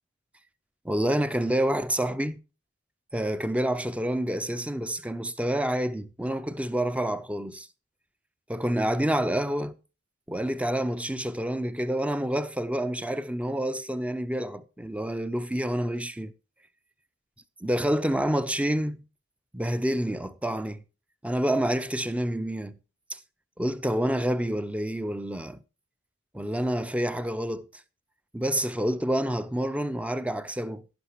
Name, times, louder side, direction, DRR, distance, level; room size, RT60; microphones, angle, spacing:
voice 1, 0.8-2.4 3.1-7.7 8.5-9.8 10.3-16.3 17.6-19.0 19.5-20.8 21.2-22.7 23.1-23.2 23.6-25.6 26.3-27.7 28.3-30.8, right 1 dB, 5° right, 0.5 m, -28 dB
11.5 x 11.0 x 3.0 m
head